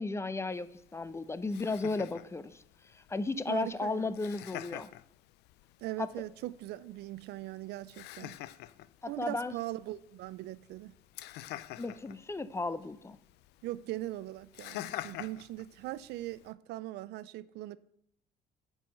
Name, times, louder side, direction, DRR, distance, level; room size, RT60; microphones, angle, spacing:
voice 1, 0.0-2.6 3.1-4.9 6.0-6.1 9.0-9.5 11.8-13.2, left 3 dB, 15° left, 0.5 m, -34 dB
Laughter, 0.5-16.5, left 15 dB, 85° left, 0.5 m, -48 dB
voice 2, 3.5-4.2 5.8-8.4 9.1-10.9 13.6-17.8, right 16 dB, 80° right, 0.4 m, -40 dB
9.3 x 4.8 x 5.6 m
cardioid pair, 110°, 17 cm